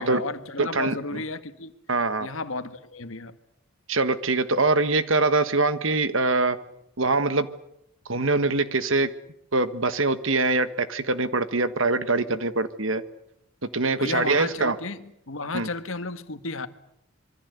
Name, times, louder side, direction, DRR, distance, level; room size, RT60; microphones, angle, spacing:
voice 1, 0.0-1.7 2.2-3.4 13.9-16.7, left 3 dB, 70° left, 1.7 m, -33 dB
voice 2, 0.6-0.9 1.9-2.3 3.9-6.6 7.0-7.5 8.1-9.1 9.5-13.0 13.7-14.8 15.5-15.7, right 3 dB, 65° right, 1.6 m, -23 dB
26.0 x 23.5 x 8.2 m
head